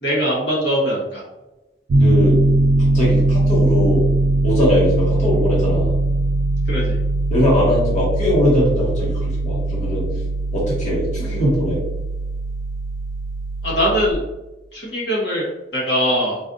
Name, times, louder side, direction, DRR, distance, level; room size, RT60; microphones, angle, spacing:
voice 1, 0.0-1.2 6.7-7.0 13.6-14.2 14.7-15.5 15.7-16.4, equal, 70° left, -5 dB, 1.1 m, -21 dB
Piano, 1.9-14.1, right 2 dB, 75° right, 0.4 m, -20 dB
voice 2, 2.0-2.4 2.9-4.0 4.4-5.9 7.3-10.1 10.5-11.8, left 1 dB, 40° left, -6 dB, 1.2 m, -20 dB
4.1 x 2.5 x 2.5 m, 1.0 s
head